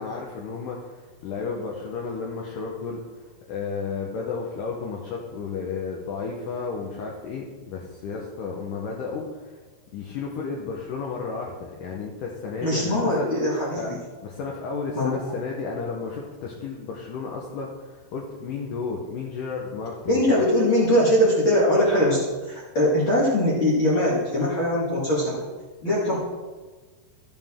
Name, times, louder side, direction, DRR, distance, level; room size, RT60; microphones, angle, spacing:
voice 1, 0.0-3.2 3.5-9.6 9.9-13.3 13.8-13.9 14.2-20.4, left 5 dB, 75° left, -2 dB, 2.0 m, -33 dB
voice 2, 12.6-14.0 14.9-15.2 20.1-22.2 22.5-25.4 25.8-26.2, left 1 dB, 45° left, -6 dB, 1.7 m, -21 dB
14.0 x 7.3 x 3.7 m, 1.3 s
omnidirectional pair, 5.2 m